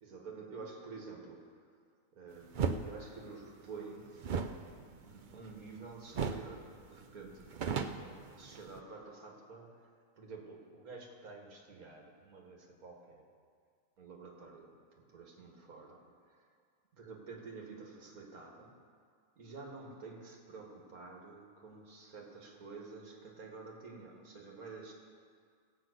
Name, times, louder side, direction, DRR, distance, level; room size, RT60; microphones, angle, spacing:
voice 1, 0.0-1.7 2.1-13.3 14.0-16.5 17.0-18.9 19.4-24.9, right 4 dB, 80° right, 0 dB, 2.1 m, -50 dB
sound 1, 2.5-2.8 4.2-5.8 6.1-6.5 6.8-6.9 7.3-8.8, right 6 dB, 55° right, 0.5 m, -36 dB
16.5 x 5.9 x 7.9 m, 2.1 s
omnidirectional pair, 1.5 m